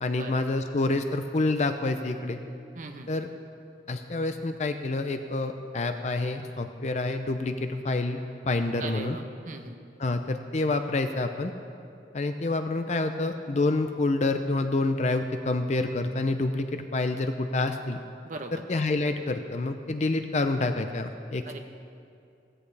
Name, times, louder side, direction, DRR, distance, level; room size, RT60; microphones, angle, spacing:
voice 1, 0.0-2.4 3.1-3.3 3.9-9.2 10.0-11.5 12.1-18.0 18.7-21.6, left 2 dB, 40° left, 7 dB, 0.5 m, -28 dB
voice 2, 2.7-3.1 8.8-9.8 18.2-18.5 21.5-21.6, right 3 dB, 45° right, 5 dB, 0.8 m, -39 dB
16.5 x 15.5 x 3.3 m, 2.6 s
head